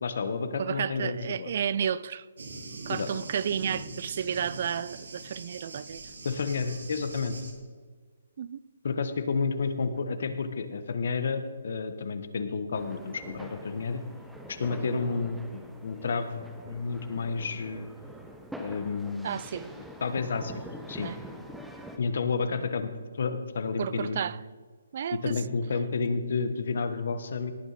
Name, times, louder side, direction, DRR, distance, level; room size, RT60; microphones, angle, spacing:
voice 1, 0.0-1.5 2.9-3.1 5.7-5.8 6.2-7.4 8.8-14.0 14.5-17.9 18.6-19.4 19.7-20.6 20.9-21.1 22.0-22.9 23.2-24.2 25.1-27.5, left 4 dB, 60° left, 1.2 m, -31 dB
voice 2, 0.6-2.3 2.9-6.0 8.4-8.6 19.2-19.7 21.0-21.2 22.6-22.7 23.8-24.4 24.9-25.3, right 8 dB, 45° right, 0.3 m, -32 dB
Thunder, 2.4-7.5, right 3 dB, 90° right, 2.5 m, -42 dB
sound 1, 12.7-22.0, equal, ahead, 0.8 m, -45 dB
18.0 x 9.1 x 4.2 m
hypercardioid pair, 165°, 0 cm